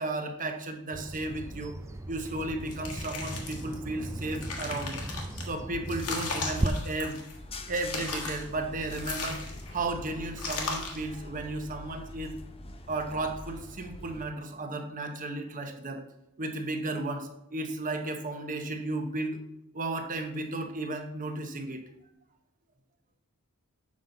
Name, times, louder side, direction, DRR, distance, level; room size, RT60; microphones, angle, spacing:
voice 1, 0.0-1.7 2.1-5.0 5.4-7.2 7.7-9.4 9.7-12.3 12.9-16.0 16.4-19.4 19.7-21.8, right 2 dB, 35° right, 5 dB, 0.9 m, -34 dB
Bird vocalization bird call bird song, 0.9-6.7, right 1 dB, 15° right, 0.4 m, -37 dB
sound 1, 2.7-3.7 4.2-5.4 5.9-7.4 7.7-8.5 8.9-9.8 10.4-11.1, left 4 dB, 75° left, 1.5 m, -37 dB
sound 2, 7.3-14.2, left 1 dB, 25° left, 0.7 m, -44 dB
7.4 x 5.6 x 3.8 m, 0.83 s
head